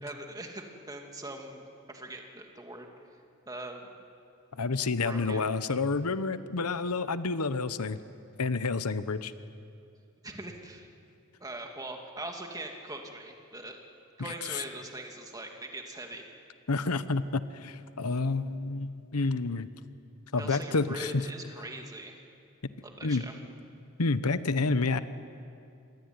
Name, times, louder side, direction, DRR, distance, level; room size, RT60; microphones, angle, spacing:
voice 1, 0.0-1.6 1.9-2.9 3.5-3.9 5.0-5.5 10.2-10.9 11.4-13.8 14.2-16.3 20.4-22.2 22.8-23.3, right 1 dB, 15° right, 2 dB, 2.5 m, -41 dB
voice 2, 4.6-8.0 8.4-9.3 14.2-14.6 16.7-19.7 20.3-21.3 23.0-23.2 24.0-25.0, left 3 dB, 90° left, 13 dB, 1.0 m, -29 dB
27.0 x 22.5 x 9.6 m, 2.5 s
head